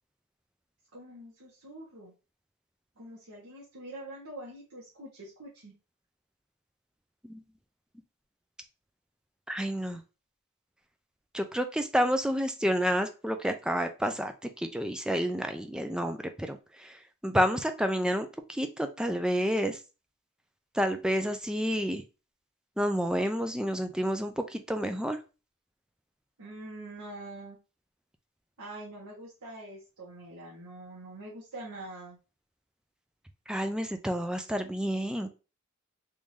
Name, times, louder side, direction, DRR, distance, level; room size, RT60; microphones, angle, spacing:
voice 1, 0.9-2.1 3.0-5.7 26.4-27.6 28.6-32.2, right 1 dB, 75° right, -5 dB, 1.2 m, -45 dB
voice 2, 9.5-10.0 11.3-14.3 14.6-17.0 17.2-19.8 20.8-22.0 22.8-25.2 33.5-35.3, equal, 5° right, 7 dB, 0.3 m, -29 dB
3.6 x 2.6 x 3.1 m, 0.31 s
head